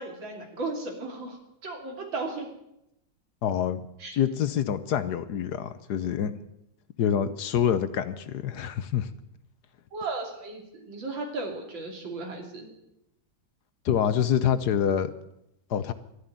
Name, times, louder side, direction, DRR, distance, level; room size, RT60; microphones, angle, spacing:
voice 1, 0.0-1.4 1.6-2.5 4.0-4.1 9.9-12.7, right 3 dB, 85° right, 2 dB, 3.6 m, -35 dB
voice 2, 3.4-3.8 4.1-6.3 7.0-9.1 13.8-15.1 15.7-15.9, left 9 dB, 65° left, 12 dB, 1.3 m, -26 dB
13.0 x 11.0 x 9.1 m, 0.82 s
omnidirectional pair, 2.0 m